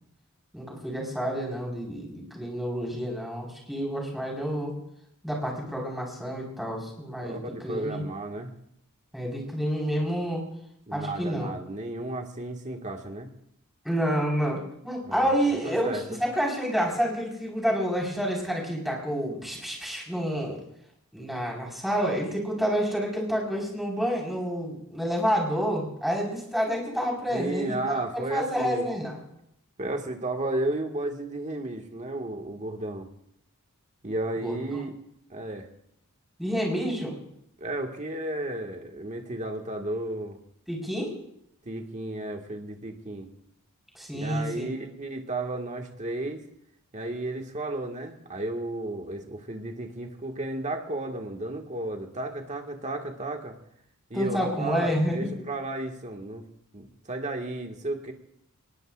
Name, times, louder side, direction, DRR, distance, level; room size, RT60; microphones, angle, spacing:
voice 1, 0.5-4.7 5.2-8.0 9.1-10.4 10.9-11.5 13.8-15.9 16.2-20.6 21.1-29.2 34.4-34.5 36.4-37.1 40.7-41.1 43.9-44.7 54.1-55.5, equal, ahead, -2 dB, 4.7 m, -29 dB
voice 2, 7.2-8.5 10.9-13.3 15.1-15.3 15.6-16.2 27.3-28.9 29.8-33.1 34.0-35.0 35.3-35.7 37.6-40.4 41.7-43.3 44.1-46.4 46.9-53.6 54.1-56.4 56.7-58.1, right 2 dB, 35° right, 2 dB, 1.8 m, -33 dB
23.5 x 20.0 x 2.5 m, 0.73 s
head